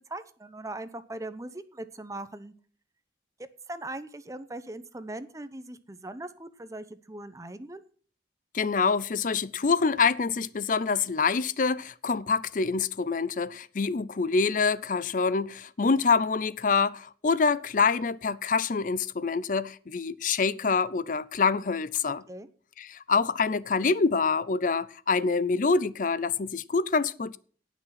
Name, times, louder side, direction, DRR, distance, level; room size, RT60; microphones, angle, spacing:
voice 1, 0.1-2.5 3.7-7.8 22.3-22.5, right 2 dB, 20° right, 0.7 m, -40 dB
voice 2, 8.5-22.2 22.8-27.4, left 4 dB, 45° left, 0.5 m, -26 dB
17.5 x 6.2 x 5.8 m
head